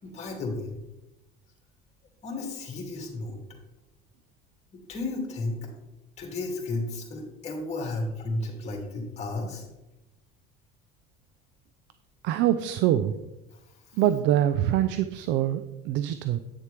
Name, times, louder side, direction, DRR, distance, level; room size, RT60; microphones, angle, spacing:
voice 1, 0.0-0.8 2.2-3.4 4.7-5.7 6.2-9.7 13.5-14.0, left 2 dB, 30° left, 0 dB, 2.3 m, -33 dB
voice 2, 12.2-13.1 14.0-16.4, right 12 dB, 60° right, 11 dB, 0.4 m, -24 dB
9.1 x 6.6 x 3.3 m, 0.97 s
cardioid pair, 125°, 21 cm